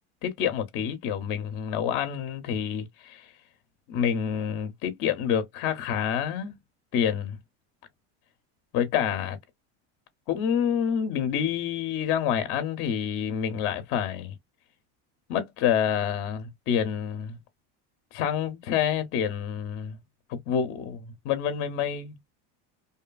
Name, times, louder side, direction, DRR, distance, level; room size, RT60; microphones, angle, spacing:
voice 1, 0.2-3.3 3.9-6.6 6.9-7.4 8.7-9.4 10.3-14.3 15.3-17.4 18.1-20.0 20.3-22.2, left 8 dB, 40° left, 0.4 m, -28 dB
2.6 x 2.2 x 2.2 m
cardioid pair, 170°, 34 cm